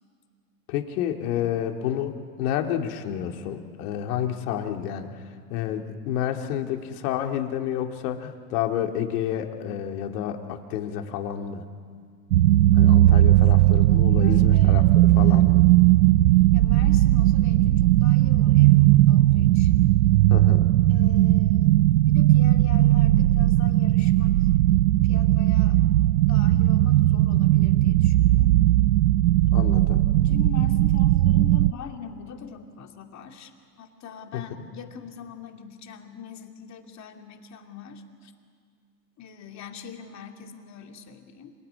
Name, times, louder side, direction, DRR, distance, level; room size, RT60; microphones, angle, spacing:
voice 1, 0.7-5.1 5.5-11.6 12.7-15.6 20.3-20.7 29.5-30.0 34.3-34.7, left 10 dB, 60° left, 4 dB, 2.5 m, -30 dB
voice 2, 1.3-1.6 14.2-14.9 15.1-15.9 16.5-19.9 20.9-24.5 25.0-25.8 26.2-28.6 30.1-33.5 33.8-38.3 39.2-41.5, left 7 dB, 35° left, 4 dB, 2.6 m, -42 dB
sound 1, 12.3-31.7, right 15 dB, 85° right, 0.6 m, -18 dB
26.5 x 18.5 x 9.6 m, 2.1 s
hypercardioid pair, 115°, 50 cm